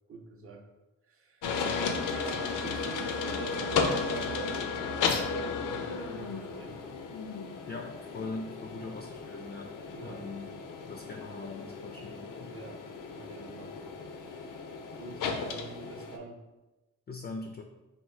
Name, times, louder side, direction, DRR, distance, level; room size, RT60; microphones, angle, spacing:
voice 1, 0.1-0.7 1.0-1.5 2.1-6.9 9.9-10.3 12.4-14.6 15.0-16.4, right 3 dB, 45° right, 2 dB, 0.7 m, -46 dB
sound 1, 1.4-16.2, left 4 dB, 85° left, 0.5 m, -34 dB
voice 2, 7.7-10.5 10.9-12.5 17.1-17.6, left 3 dB, 35° left, 3 dB, 0.4 m, -41 dB
3.5 x 2.6 x 4.3 m, 1.1 s
cardioid pair, 115°, 31 cm